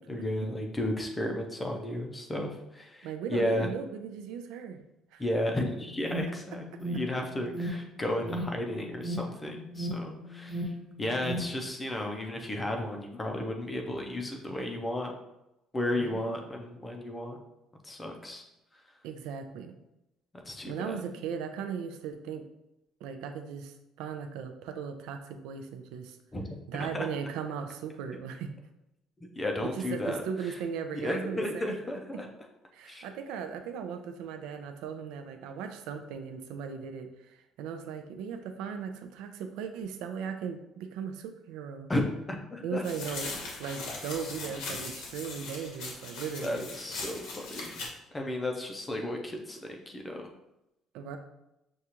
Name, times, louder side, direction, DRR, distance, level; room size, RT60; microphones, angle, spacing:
voice 1, 0.1-3.7 5.2-10.7 11.0-15.1 15.7-17.4 17.8-18.4 20.5-21.0 26.3-26.4 26.8-27.1 29.4-30.6 30.9-32.3 32.8-33.0 41.9-42.0 42.3-42.8 46.4-50.3, left 1 dB, 10° left, 2 dB, 0.5 m, -33 dB
voice 2, 3.0-4.8 5.1-5.2 16.0-16.4 19.0-19.8 20.7-22.4 23.0-26.2 26.7-28.6 29.6-31.8 32.7-41.9 42.6-46.7 50.9-51.2, right 7 dB, 90° right, 6 dB, 0.4 m, -37 dB
Alarm, 5.8-11.7, equal, 55° right, 1.1 m, -37 dB
sound 1, 42.8-47.9, left 3 dB, 75° left, 0.9 m, -40 dB
6.4 x 2.3 x 2.9 m, 0.89 s
cardioid pair, 180°, 0 cm